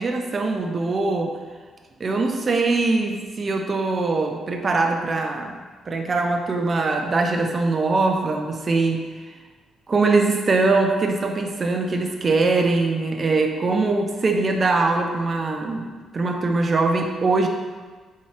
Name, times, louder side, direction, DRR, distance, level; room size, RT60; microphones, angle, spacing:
voice 1, 0.0-1.4 2.0-9.0 9.9-17.5, right 3 dB, 35° right, 3 dB, 0.4 m, -22 dB
3.5 x 2.7 x 3.2 m, 1.4 s
cardioid pair, 90°, 0 cm